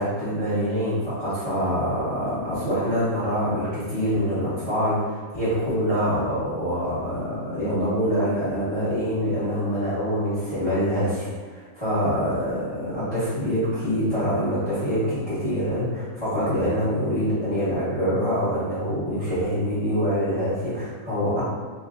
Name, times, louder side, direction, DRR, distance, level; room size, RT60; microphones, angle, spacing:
voice 1, 0.0-21.4, equal, 20° left, -15 dB, 1.3 m, -25 dB
3.2 x 2.4 x 3.7 m, 1.4 s
omnidirectional pair, 1.5 m